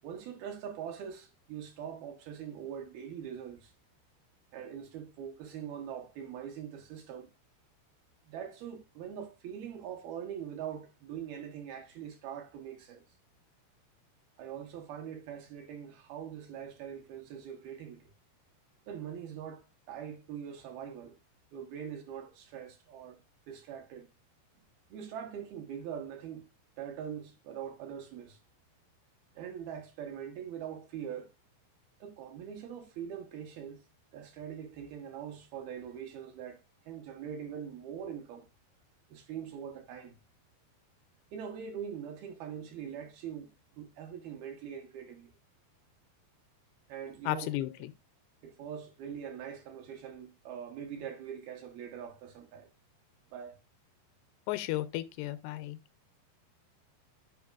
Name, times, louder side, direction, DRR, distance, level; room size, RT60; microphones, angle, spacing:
voice 1, 0.0-3.7 4.5-7.3 8.3-13.0 14.4-18.1 18.9-21.1 21.5-23.2 23.5-24.1 24.9-26.4 26.8-28.4 29.3-31.3 32.0-33.8 34.1-38.5 39.1-40.1 41.3-43.5 43.8-45.3 46.9-47.5 48.4-52.7 53.3-53.6, right 8 dB, 70° right, 2.6 m, -42 dB
voice 2, 47.3-47.9 54.5-55.8, left 16 dB, 85° left, 2.5 m, -34 dB
10.5 x 5.1 x 2.4 m
omnidirectional pair, 5.0 m